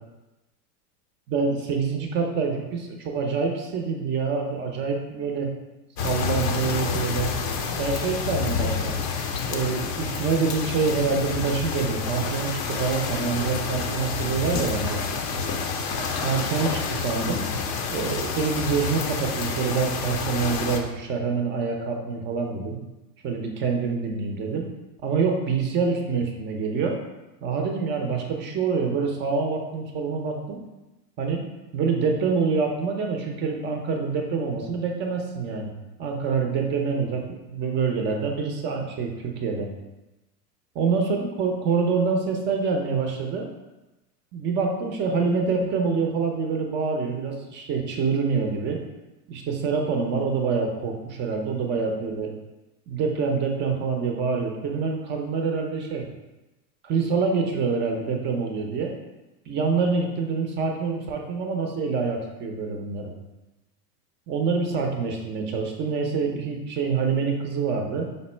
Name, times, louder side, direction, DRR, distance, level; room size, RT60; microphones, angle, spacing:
voice 1, 1.3-5.5 6.0-7.3 7.8-8.9 9.4-15.0 16.2-17.4 17.9-22.8 23.2-24.7 25.0-27.0 27.4-30.6 31.2-31.4 31.7-35.7 36.0-39.7 40.8-43.5 44.3-48.8 49.3-52.3 52.9-56.0 56.8-58.9 59.5-63.1 64.3-68.1, right 5 dB, 25° right, 2 dB, 0.4 m, -26 dB
sound 1, 6.0-20.8, left 5 dB, 35° left, 0.5 m, -29 dB
sound 2, 7.2-7.4 7.7-21.0, left 3 dB, 75° left, 0.9 m, -38 dB
5.2 x 2.0 x 4.2 m, 1.0 s
supercardioid pair, 120°, 49 cm